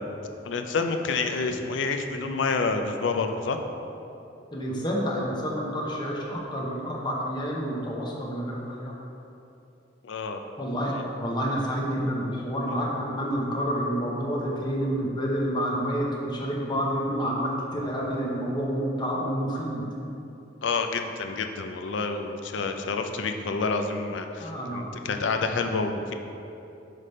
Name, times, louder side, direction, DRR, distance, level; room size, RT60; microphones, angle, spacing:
voice 1, 0.4-3.6 10.0-10.4 10.9-11.0 12.7-12.8 20.6-26.1, left 4 dB, 70° left, 6 dB, 0.4 m, -28 dB
voice 2, 4.5-8.9 10.6-19.9 22.5-22.7 24.4-25.2, equal, 25° left, -3 dB, 0.7 m, -29 dB
5.8 x 3.3 x 5.3 m, 2.7 s
head